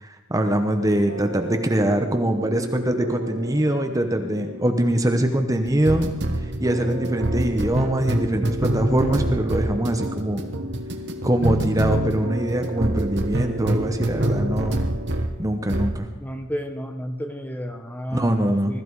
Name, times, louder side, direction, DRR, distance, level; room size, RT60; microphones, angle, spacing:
voice 1, 0.0-10.4 11.2-14.8 15.4-16.1 18.1-18.8, right 1 dB, 15° right, 6 dB, 0.9 m, -23 dB
sound 1, 1.1-15.4 15.7-16.0, right 1 dB, 55° right, 1.4 m, -27 dB
voice 2, 16.2-18.8, equal, 10° left, 6 dB, 1.0 m, -32 dB
21.0 x 13.5 x 4.8 m, 1.1 s
head